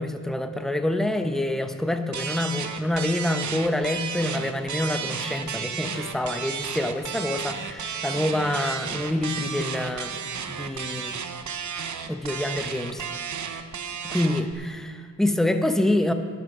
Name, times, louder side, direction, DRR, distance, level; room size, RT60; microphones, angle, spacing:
voice 1, 0.0-10.2 10.5-11.2 12.1-13.0 14.0-16.1, left 1 dB, ahead, 7 dB, 0.8 m, -26 dB
sound 1, 2.1-14.5, right 6 dB, 60° right, 0.8 m, -33 dB
10.5 x 10.5 x 6.2 m, 2.3 s
wide cardioid pair, 105°, 34 cm